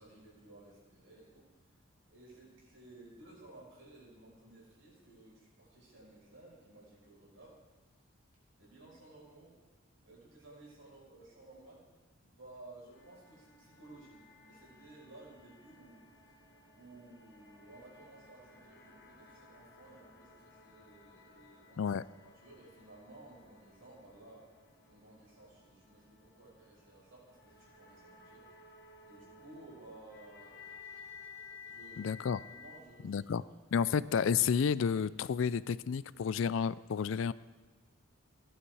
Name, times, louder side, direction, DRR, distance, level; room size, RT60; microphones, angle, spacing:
voice 1, 0.0-1.5 2.1-7.6 8.6-9.6 10.0-11.9 12.2-16.0 16.7-22.0 22.2-24.4 24.8-28.5 29.0-30.5 31.7-33.8, right 2 dB, 75° right, -4 dB, 5.7 m, -56 dB
sound 1, 12.9-32.8, left 4 dB, 50° left, 1.6 m, -56 dB
voice 2, 32.0-32.4 33.0-33.4 33.7-37.3, left 7 dB, 70° left, 18 dB, 0.4 m, -31 dB
15.5 x 11.5 x 4.8 m, 1.2 s
head